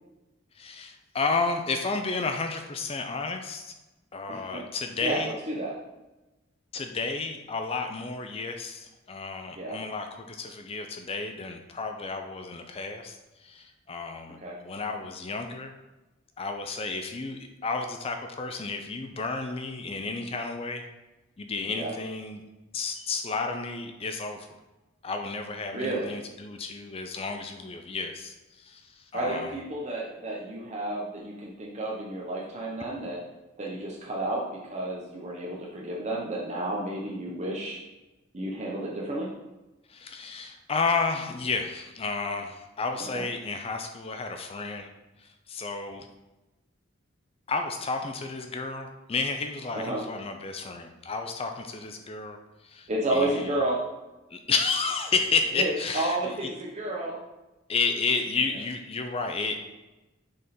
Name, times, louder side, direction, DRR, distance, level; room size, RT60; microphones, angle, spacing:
voice 1, 0.5-3.7 4.1-5.3 6.7-15.7 16.4-20.8 21.4-22.4 22.7-24.5 25.0-29.5 39.9-44.9 45.2-46.1 47.5-52.4 52.6-53.5 54.3-56.5 57.7-59.6, left 4 dB, 30° left, 5 dB, 0.4 m, -32 dB
voice 2, 4.3-4.6 5.0-5.8 9.6-9.8 14.4-14.6 21.7-21.9 25.7-26.1 29.1-33.2 33.6-37.8 38.3-39.3 43.1-43.2 49.7-50.0 52.9-53.8 55.6-57.2, right 1 dB, 35° right, -2 dB, 0.8 m, -31 dB
6.5 x 3.6 x 4.2 m, 1.1 s
head